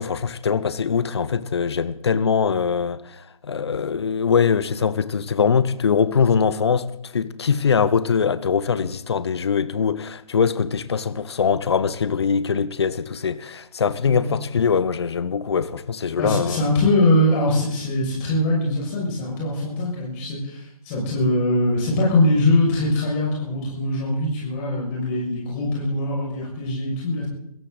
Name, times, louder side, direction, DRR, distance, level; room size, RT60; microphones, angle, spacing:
voice 1, 0.0-6.9 7.1-16.6, left 6 dB, 45° left, 1.1 m, -22 dB
voice 2, 16.2-27.3, left 1 dB, 20° left, 6.5 m, -22 dB
21.0 x 16.0 x 4.1 m
figure-of-eight pair, 145°, 19 cm